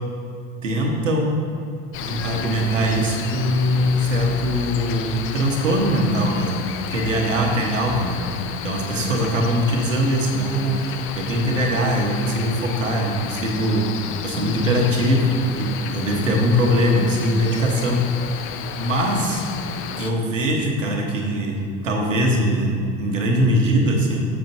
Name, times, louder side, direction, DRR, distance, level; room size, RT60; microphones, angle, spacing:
voice 1, 0.6-1.4 2.0-6.5 6.9-8.2 8.6-13.9 14.2-18.0 18.8-19.4 20.0-21.6 21.8-24.3, equal, 85° right, 0 dB, 1.2 m, -21 dB
Cricket, 1.9-20.1, left 8 dB, 35° left, 0.5 m, -32 dB
9.0 x 6.8 x 2.7 m, 2.4 s
hypercardioid pair, 80°, 37 cm